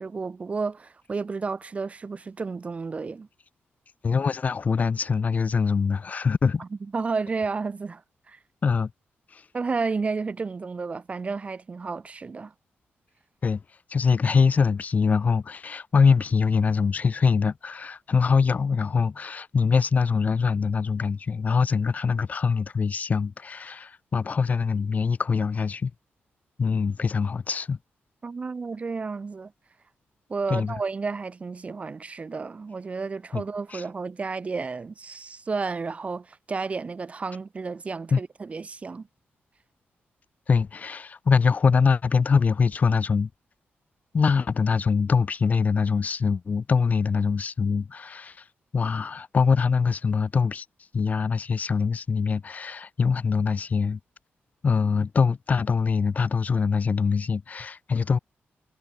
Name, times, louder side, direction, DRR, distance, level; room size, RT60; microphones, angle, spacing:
voice 1, 0.0-3.3 6.6-6.7 6.9-8.0 8.3-8.4 9.5-12.5 28.2-29.5 30.3-39.1, right 4 dB, 30° right, 0.6 m, -31 dB
voice 2, 4.0-6.6 8.6-8.9 9.3-9.4 13.4-13.6 13.9-25.9 26.6-27.8 30.5-30.7 33.3-33.4 33.7-33.8 38.1-38.2 40.5-43.3 44.1-48.4 48.7-50.6 50.9-54.0 54.6-58.2, left 5 dB, 35° left, 0.6 m, -23 dB
wide cardioid pair, 140°, 4 cm